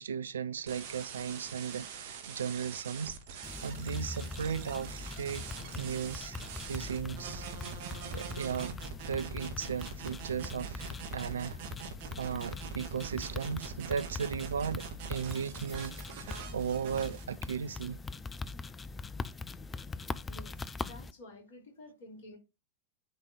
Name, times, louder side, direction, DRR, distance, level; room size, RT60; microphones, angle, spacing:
voice 1, 0.0-5.4 5.7-6.4 6.7-7.5 8.1-8.8 9.1-11.6 12.2-15.9 16.2-18.0, right 7 dB, 70° right, 0.6 m, -36 dB
sound 1, 0.7-17.2, right 6 dB, 50° right, 1.7 m, -44 dB
sound 2, 3.4-21.1, left 3 dB, 15° left, 0.6 m, -42 dB
voice 2, 20.3-22.4, left 2 dB, 50° left, 5.5 m, -51 dB
9.4 x 4.0 x 6.4 m
figure-of-eight pair, 90°, 0 cm